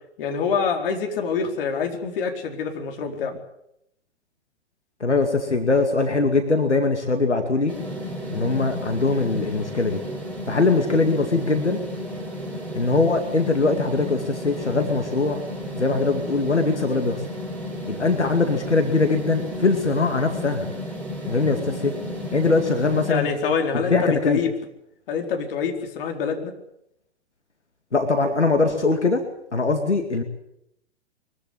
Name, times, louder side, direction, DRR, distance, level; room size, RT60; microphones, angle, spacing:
voice 1, 0.2-3.4 23.1-24.5 25.1-26.5, left 5 dB, 55° left, 4 dB, 4.4 m, -26 dB
voice 2, 5.0-7.7 8.3-10.0 10.5-11.8 12.8-15.4 15.8-17.2 17.9-20.7 21.3-21.9 22.3-23.3 23.9-24.4 27.9-29.2 29.5-30.2, left 3 dB, 90° left, 6 dB, 2.5 m, -21 dB
sound 1, 7.7-23.1, left 1 dB, 5° left, 6.7 m, -33 dB
23.5 x 15.0 x 9.8 m, 0.79 s
figure-of-eight pair, 110°, 34 cm